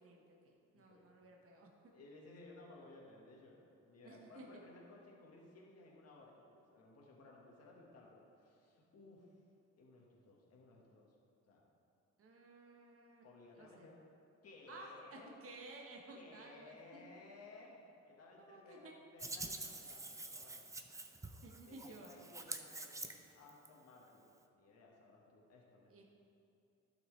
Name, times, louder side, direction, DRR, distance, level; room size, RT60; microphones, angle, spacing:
voice 1, 0.0-1.7 4.0-4.5 12.2-13.3 13.6-13.9 14.7-17.0 18.4-18.9 21.4-22.1 25.9-26.0, right 2 dB, 50° right, 0 dB, 1.2 m, -55 dB
voice 2, 0.7-1.3 1.9-9.4 9.8-11.1 11.4-11.6 13.2-13.9 14.4-15.3 16.1-20.7 21.6-26.0, left 2 dB, 55° left, -2 dB, 1.5 m, -59 dB
Hands, 19.2-23.7, right 2 dB, 10° right, 0.5 m, -47 dB
12.0 x 6.0 x 3.2 m, 2.7 s
cardioid pair, 90°, 30 cm